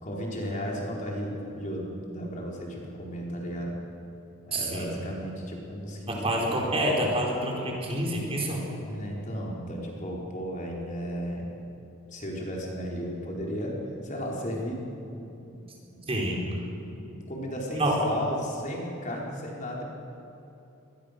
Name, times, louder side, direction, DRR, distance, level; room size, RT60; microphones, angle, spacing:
voice 1, 0.0-3.8 4.5-7.1 8.7-11.5 12.1-13.8 14.0-14.8 15.1-16.1 16.9-19.8, equal, 35° left, -2 dB, 4.6 m, -35 dB
voice 2, 4.5-4.9 6.1-8.6 16.1-16.5 17.8-18.0, right 1 dB, 30° right, -2 dB, 4.3 m, -27 dB
25.0 x 21.0 x 6.8 m, 2.9 s
head